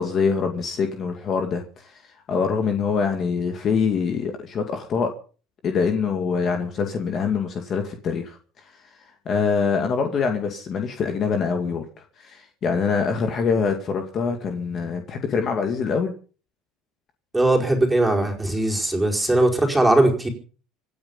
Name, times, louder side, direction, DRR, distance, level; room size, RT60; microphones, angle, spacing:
voice 1, 0.0-2.0 2.3-5.1 5.6-8.4 9.3-16.1, left 5 dB, 35° left, 4 dB, 2.2 m, -24 dB
voice 2, 17.3-20.3, right 1 dB, 5° right, 0 dB, 4.8 m, -19 dB
26.0 x 9.7 x 5.6 m, 0.40 s
cardioid pair, 155°, 0 cm